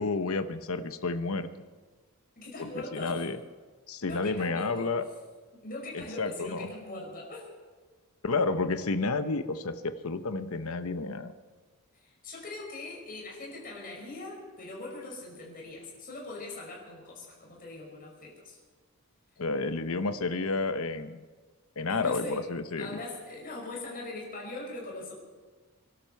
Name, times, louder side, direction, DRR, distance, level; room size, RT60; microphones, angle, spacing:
voice 1, 0.0-1.5 2.6-3.4 3.9-5.0 6.2-6.7 8.2-11.3 19.4-21.2 21.8-23.0, left 3 dB, 70° left, 10 dB, 0.9 m, -30 dB
voice 2, 2.4-3.3 4.0-5.0 5.5-7.5 11.9-18.6 21.9-22.4 22.8-25.1, left 2 dB, 40° left, -2 dB, 5.6 m, -41 dB
25.0 x 12.0 x 4.6 m, 1.4 s
head